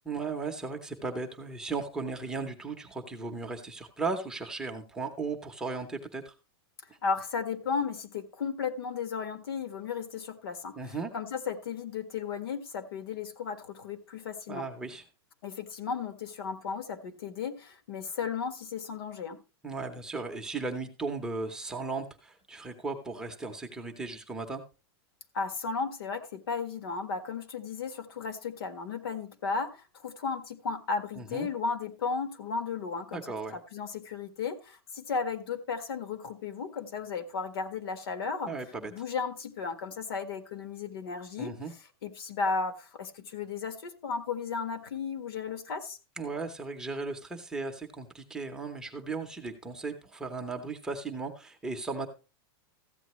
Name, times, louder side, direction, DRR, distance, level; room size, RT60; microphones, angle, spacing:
voice 1, 0.0-6.3 10.8-11.1 14.5-15.0 19.6-24.6 31.1-31.5 33.1-33.6 38.5-38.9 41.4-41.7 46.2-52.1, right 3 dB, 5° right, 0.8 m, -36 dB
voice 2, 7.0-10.8 11.1-14.6 15.4-19.4 25.3-29.8 30.0-33.2 33.5-38.5 38.9-41.5 42.0-46.0, left 5 dB, 70° left, 1.6 m, -34 dB
14.5 x 8.8 x 3.1 m
supercardioid pair, 175°, 13 cm